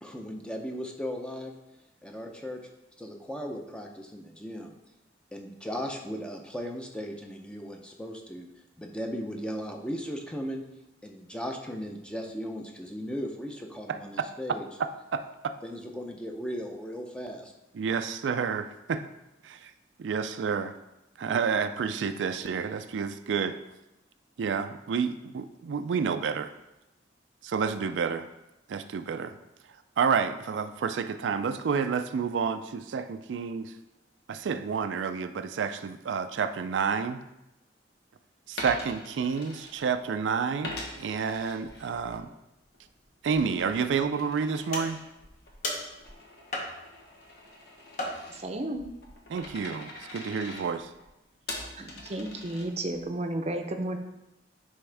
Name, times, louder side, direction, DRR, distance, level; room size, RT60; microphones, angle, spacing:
voice 1, 0.0-1.5 2.0-2.6 3.0-4.7 5.3-8.5 8.8-10.6 11.0-14.7 15.6-17.5, equal, 5° left, 2 dB, 0.6 m, -37 dB
voice 2, 15.1-15.5 17.8-19.0 19.4-19.7 20.0-20.7 21.2-23.6 24.4-26.5 27.5-28.2 28.7-29.3 30.0-33.7 34.3-37.2 38.5-42.3 43.2-45.0 49.3-50.9, right 6 dB, 90° right, 9 dB, 0.4 m, -29 dB
Coin (dropping), 38.5-40.2 40.6-42.2 42.6-53.0, left 2 dB, 65° left, 1.2 m, -44 dB
sound 1, 44.7-45.2 45.6-46.1 46.5-47.1 48.0-48.6, left 1 dB, 45° left, 1.1 m, -35 dB
voice 3, 48.3-48.8 51.8-54.0, right 1 dB, 35° right, 6 dB, 0.6 m, -33 dB
9.6 x 3.5 x 3.4 m, 0.92 s
head